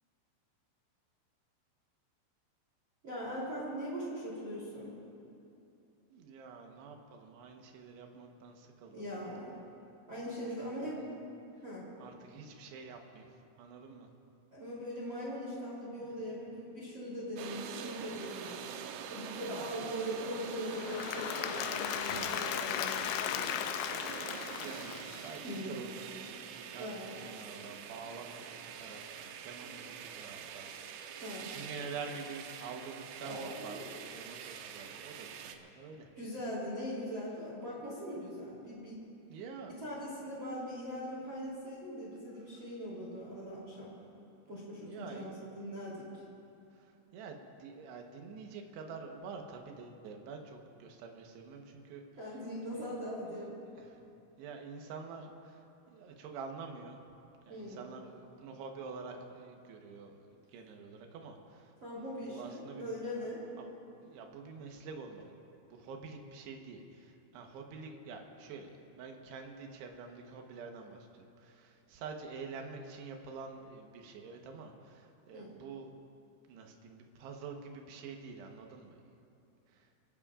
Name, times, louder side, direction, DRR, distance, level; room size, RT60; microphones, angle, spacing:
voice 1, 3.0-4.9 8.9-9.6 10.1-11.0 11.6-11.9 14.5-18.6 19.1-23.5 25.4-25.8 26.8-27.1 29.6-29.7 31.2-31.5 33.2-34.0 36.2-39.0 39.6-44.0 44.5-46.1 52.2-53.6 57.5-57.8 61.8-63.4 75.3-75.5, equal, 30° right, -6 dB, 3.1 m, -41 dB
voice 2, 6.1-9.1 10.6-10.9 12.0-13.3 13.6-14.1 16.0-16.1 19.5-19.9 24.6-26.9 27.2-30.7 31.4-33.8 34.1-36.1 39.3-39.7 44.8-45.4 47.1-52.0 52.7-52.9 53.7-53.9 54.4-55.6 55.9-57.0 57.5-61.7 62.3-63.0 63.6-63.7 64.0-65.3 65.7-75.9 76.5-79.0 79.8-79.9, right 5 dB, 70° right, 3 dB, 2.8 m, -47 dB
sound 1, 17.4-35.6, right 8 dB, 85° right, 3.2 m, -45 dB
Applause / Crowd, 20.7-25.6, left 11 dB, 85° left, 3.2 m, -36 dB
26.0 x 18.0 x 2.5 m, 2.7 s
omnidirectional pair, 5.8 m